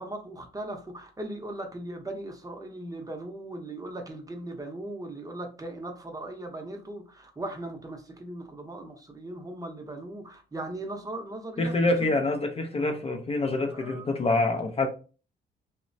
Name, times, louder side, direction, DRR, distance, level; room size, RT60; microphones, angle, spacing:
voice 1, 0.0-11.7 12.0-12.2 13.7-14.1 14.5-14.6, right 1 dB, 20° right, 0.6 m, -38 dB
voice 2, 11.6-14.9, left 2 dB, 30° left, 0.4 m, -26 dB
2.9 x 2.1 x 2.5 m
cardioid pair, 90°, 20 cm